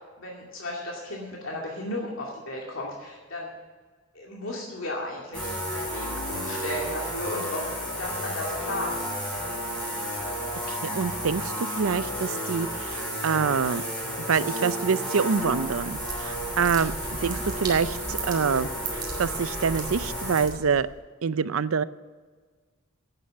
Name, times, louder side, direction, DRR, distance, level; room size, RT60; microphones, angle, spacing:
voice 1, 0.0-3.5 4.1-7.7 8.0-9.0 17.2-17.4, left 1 dB, 70° left, -3 dB, 2.4 m, -35 dB
sound 1, 5.3-20.5, equal, 5° left, 4.9 m, -32 dB
voice 2, 10.7-13.8 14.3-16.9 17.2-20.9 21.2-21.8, right 6 dB, 85° right, 16 dB, 0.5 m, -26 dB
sound 2, 15.5-21.0, right 3 dB, 20° right, 2.3 m, -38 dB
11.0 x 9.0 x 9.0 m, 1.4 s
head